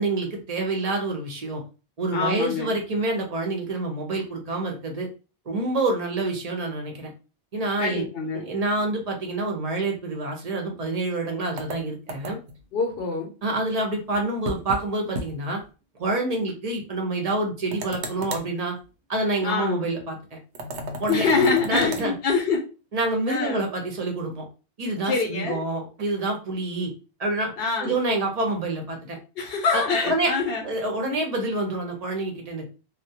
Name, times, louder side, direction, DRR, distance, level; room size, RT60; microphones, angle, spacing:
voice 1, 0.0-1.6 2.0-5.1 5.5-7.1 7.5-8.1 8.3-12.4 13.4-15.6 16.0-18.8 19.1-20.4 21.0-21.3 21.6-22.1 22.9-24.5 24.8-26.9 27.2-27.5 27.8-29.2 29.7-30.3 30.6-32.6, right 2 dB, 45° right, 2 dB, 0.6 m, -27 dB
voice 2, 2.1-2.7 7.8-8.4 12.7-13.3 19.4-19.8 21.1-22.7 23.3-23.6 25.0-25.6 27.6-28.0 29.4-30.7 31.0-31.2, left 4 dB, 70° left, 1 dB, 0.8 m, -25 dB
sound 1, 11.6-12.6 14.4-14.8 15.1-15.3 15.6-15.7 17.7-18.5 20.5-22.1, right 1 dB, 85° right, 0.9 m, -34 dB
2.2 x 2.1 x 2.7 m, 0.33 s
omnidirectional pair, 1.1 m